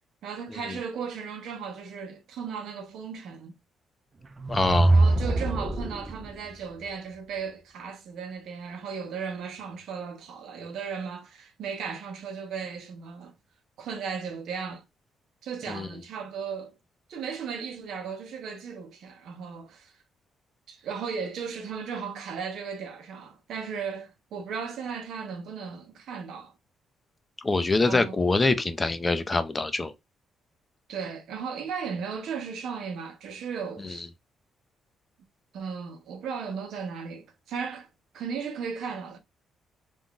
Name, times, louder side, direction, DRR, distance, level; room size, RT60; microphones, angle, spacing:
voice 1, 0.2-3.5 4.9-13.4 13.8-14.8 15.4-16.7 17.1-19.9 20.7-26.5 27.8-28.2 30.9-34.1 35.5-37.9 38.1-39.2, right 6 dB, 75° right, 0.7 m, -36 dB
sound 1, 4.2-6.3, right 2 dB, 30° right, 0.5 m, -23 dB
voice 2, 4.5-5.0 15.7-15.9 27.4-29.9 33.8-33.9, left 3 dB, 25° left, 0.4 m, -25 dB
3.7 x 2.5 x 2.2 m
cardioid pair, 90°, 0 cm